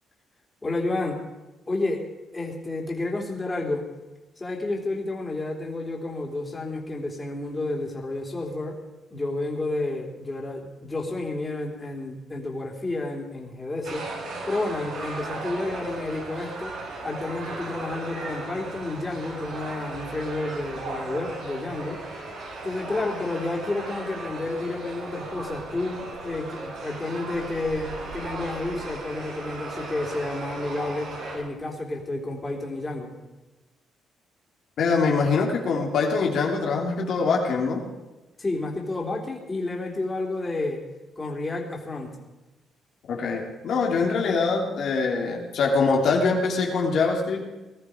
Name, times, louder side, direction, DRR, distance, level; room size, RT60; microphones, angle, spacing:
voice 1, 0.6-1.2 1.7-2.0 2.3-3.8 4.4-8.8 9.1-14.1 14.5-16.8 17.0-22.0 22.6-33.1 38.4-40.8 41.2-42.2, left 2 dB, 20° left, 0 dB, 3.6 m, -30 dB
sound 1, 13.8-31.4, right 2 dB, 75° right, 6.5 m, -36 dB
voice 2, 34.8-37.8 43.1-47.5, left 4 dB, 70° left, 0 dB, 3.1 m, -23 dB
19.5 x 13.5 x 5.1 m, 1.1 s
cardioid pair, 90°, 0 cm